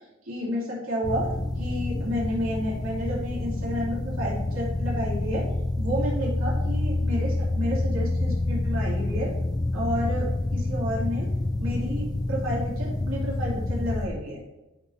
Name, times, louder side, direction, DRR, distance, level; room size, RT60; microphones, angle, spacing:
voice 1, 0.2-1.3 1.6-5.4 5.8-9.3 9.7-11.3 11.6-14.4, equal, 85° right, -5 dB, 2.7 m, -31 dB
sound 1, 1.0-14.1, left 2 dB, 20° left, 0.6 m, -28 dB
11.5 x 4.3 x 4.3 m, 1.0 s
head